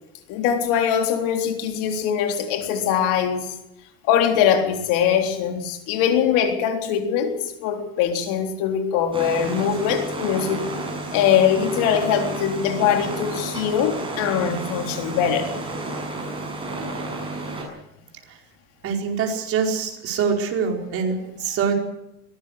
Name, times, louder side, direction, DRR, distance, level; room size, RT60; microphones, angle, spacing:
voice 1, 0.3-3.5 4.0-10.7 11.1-15.5, left 8 dB, 60° left, 3.7 m, -22 dB
sound 1, 9.1-17.6, right 2 dB, 15° right, 7.5 m, -31 dB
voice 2, 18.8-21.7, right 6 dB, 40° right, 4.8 m, -24 dB
22.5 x 17.5 x 6.6 m
cardioid pair, 145°, 35 cm